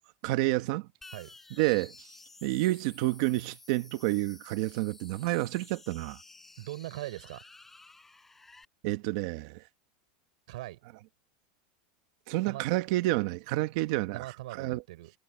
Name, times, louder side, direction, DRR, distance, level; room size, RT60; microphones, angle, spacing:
voice 1, 0.2-0.9 1.6-1.9 2.4-6.2 8.8-9.6 12.3-14.3 14.6-14.8, right 19 dB, 45° right, 1.4 m, -29 dB
sound 1, 1.0-8.7, left 3 dB, 5° left, 5.6 m, -53 dB
voice 2, 6.6-7.4 10.5-10.8 12.5-12.6 14.1-15.1, right 17 dB, 70° right, 4.8 m, -40 dB
supercardioid pair, 180°, 4 cm